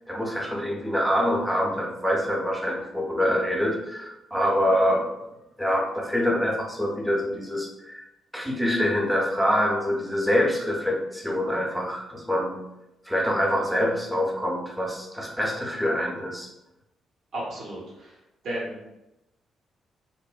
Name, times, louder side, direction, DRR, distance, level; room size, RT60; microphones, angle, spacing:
voice 1, 0.1-5.1 5.6-8.0 8.3-12.6 13.1-16.5, equal, ahead, -1 dB, 0.7 m, -25 dB
voice 2, 17.3-18.1 18.4-18.9, right 1 dB, 60° right, -7 dB, 0.8 m, -34 dB
2.7 x 2.0 x 2.3 m, 0.92 s
figure-of-eight pair, 40°, 0 cm